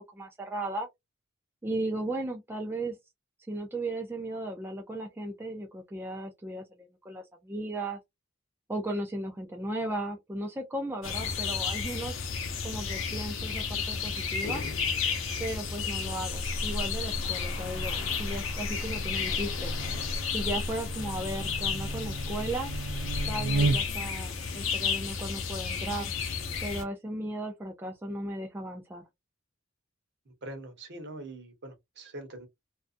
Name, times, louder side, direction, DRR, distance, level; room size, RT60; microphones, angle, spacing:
voice 1, 0.1-0.9 1.6-3.0 3.5-8.0 8.7-12.2 12.6-14.6 15.4-19.7 20.3-22.7 23.3-26.1 26.6-29.0, right 1 dB, 10° right, 0.3 m, -36 dB
sound 1, 11.0-26.8, left 6 dB, 70° left, 0.7 m, -32 dB
Buzz, 16.3-24.1, right 2 dB, 85° right, 0.5 m, -34 dB
voice 2, 30.4-32.5, right 1 dB, 55° right, 0.9 m, -43 dB
2.5 x 2.2 x 2.4 m
head